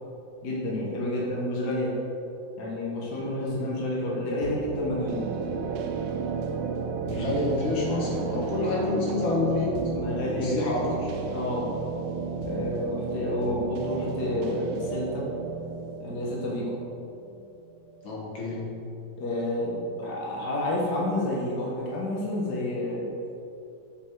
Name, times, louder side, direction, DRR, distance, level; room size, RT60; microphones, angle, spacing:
voice 1, 0.4-1.9 2.6-5.2 9.9-10.6 11.3-11.7 12.4-15.2 16.0-16.7 19.2-23.1, left 1 dB, 55° left, -5 dB, 1.6 m, -29 dB
sound 1, 4.4-18.1, right 5 dB, 90° right, 1.5 m, -33 dB
voice 2, 7.0-9.8 10.2-11.1 12.2-12.6 18.0-18.7, left 2 dB, 70° left, -4 dB, 2.3 m, -28 dB
7.1 x 5.6 x 4.5 m, 2.7 s
omnidirectional pair, 2.3 m